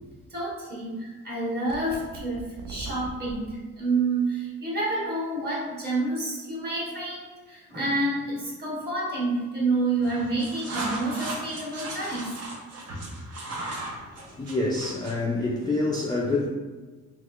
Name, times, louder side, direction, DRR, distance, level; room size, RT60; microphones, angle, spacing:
voice 1, 0.3-12.3 14.2-14.3, right 2 dB, 35° right, 1.3 m, -29 dB
sound 1, 1.7-3.4, right 3 dB, 80° right, 0.5 m, -40 dB
sound 2, 9.9-15.2, right 2 dB, 55° right, 0.8 m, -37 dB
voice 2, 14.0-16.5, left 2 dB, 15° left, 0.3 m, -27 dB
3.5 x 2.9 x 2.4 m
cardioid pair, 90°, 30 cm